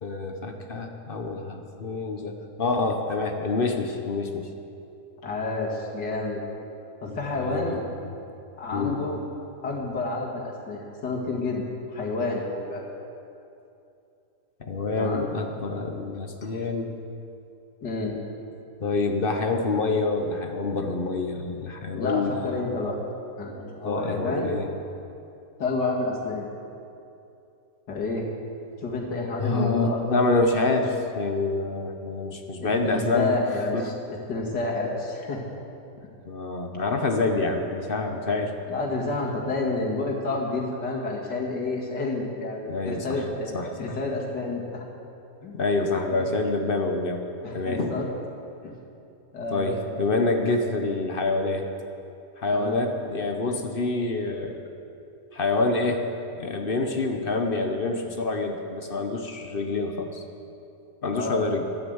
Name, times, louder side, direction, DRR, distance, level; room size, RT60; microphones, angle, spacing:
voice 1, 0.0-4.5 7.1-7.8 8.0-8.1 8.7-9.0 14.6-16.9 18.8-22.5 23.8-24.7 29.4-33.4 33.7-33.9 36.3-38.5 42.7-43.2 43.5-44.0 45.5-47.3 47.5-48.0 49.5-51.7 52.4-54.6 55.3-56.1 56.4-60.2 61.0-61.7, left 3 dB, 40° left, 4 dB, 0.9 m, -27 dB
voice 2, 5.2-6.4 7.0-7.8 8.6-9.2 9.6-11.6 11.9-12.9 15.0-15.3 17.8-18.2 21.9-23.0 23.4-24.5 25.6-26.5 27.9-28.3 28.8-30.2 32.6-33.9 34.3-35.4 38.7-44.9 45.4-45.6 46.1-46.2 47.4-48.1 48.6-48.8 49.3-50.1 52.5-52.8 61.1-61.4, left 3 dB, 90° left, -2 dB, 2.6 m, -29 dB
12.5 x 9.9 x 7.9 m, 2.7 s
omnidirectional pair, 1.8 m